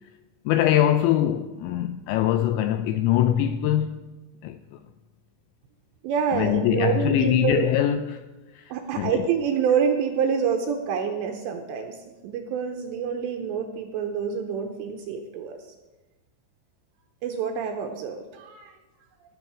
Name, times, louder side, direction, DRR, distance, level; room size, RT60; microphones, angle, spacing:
voice 1, 0.5-4.0 4.4-4.8 6.3-8.3 8.5-9.3, left 11 dB, 85° left, 2.6 m, -23 dB
voice 2, 6.0-7.7 8.7-15.7 17.2-18.7, right 7 dB, 80° right, 2.6 m, -27 dB
18.5 x 7.1 x 4.8 m
omnidirectional pair, 5.7 m